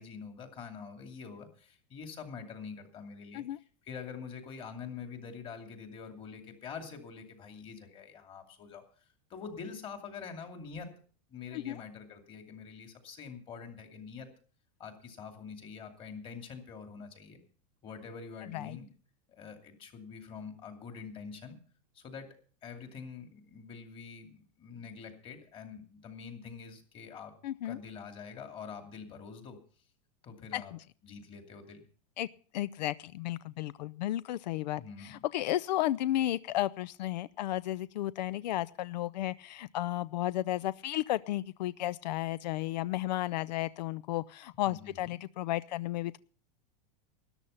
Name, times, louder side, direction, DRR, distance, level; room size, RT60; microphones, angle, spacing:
voice 1, 0.0-8.8 9.3-10.9 11.3-14.3 14.8-17.4 17.8-18.9 19.3-21.6 21.9-22.3 22.6-27.3 27.6-29.6 30.2-30.7 31.0-31.8 34.8-35.2 44.7-45.2, left 6 dB, 25° left, 5 dB, 2.6 m, -45 dB
voice 2, 18.5-18.8 27.4-27.8 30.5-30.6 32.2-32.3 32.5-46.2, left 14 dB, 90° left, 18 dB, 0.5 m, -33 dB
13.0 x 11.5 x 5.6 m, 0.42 s
supercardioid pair, 160°, 21 cm